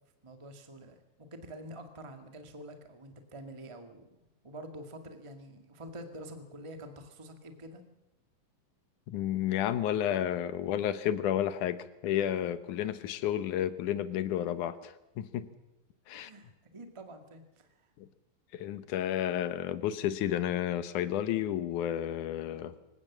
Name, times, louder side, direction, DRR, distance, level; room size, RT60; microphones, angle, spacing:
voice 1, 0.2-4.2 4.4-7.8 16.1-17.7, right 1 dB, 15° right, 6 dB, 1.0 m, -47 dB
voice 2, 9.1-15.5 16.1-16.3 18.0-18.1 18.5-22.7, left 11 dB, 70° left, 13 dB, 2.4 m, -31 dB
26.0 x 17.0 x 7.3 m, 0.97 s
omnidirectional pair, 4.0 m